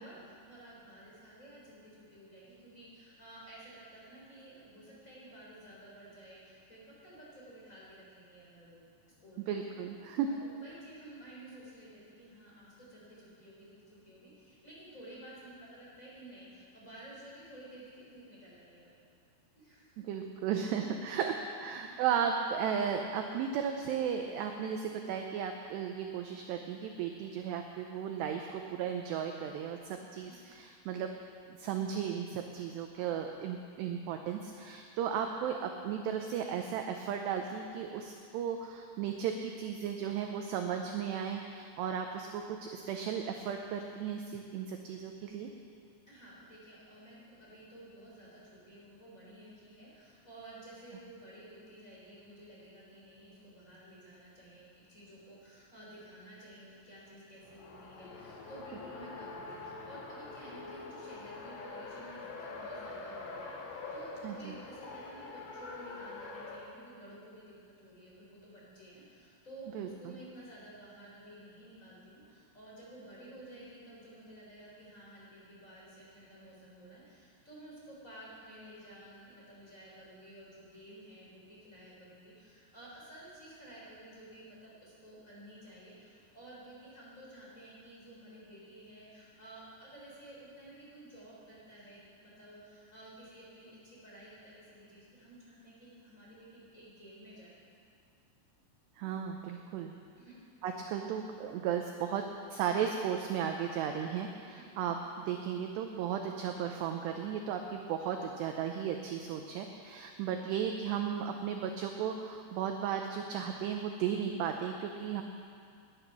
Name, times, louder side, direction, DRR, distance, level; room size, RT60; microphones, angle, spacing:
voice 1, 0.0-8.8 9.2-9.6 10.3-18.9 19.5-20.1 21.7-21.9 30.2-30.4 35.2-35.4 46.1-97.5 100.2-100.4 104.5-104.7, right 1 dB, 15° left, -6 dB, 4.0 m, -53 dB
voice 2, 9.5-10.3 20.1-31.1 31.5-45.5 64.2-64.5 69.7-69.9 99.0-99.9 100.6-102.2 102.5-115.2, right 8 dB, 80° right, 4 dB, 2.5 m, -35 dB
Race car auto racing, 57.4-66.6, left 3 dB, 70° left, 3.4 m, -45 dB
20.0 x 10.5 x 6.1 m, 2.3 s
omnidirectional pair, 5.7 m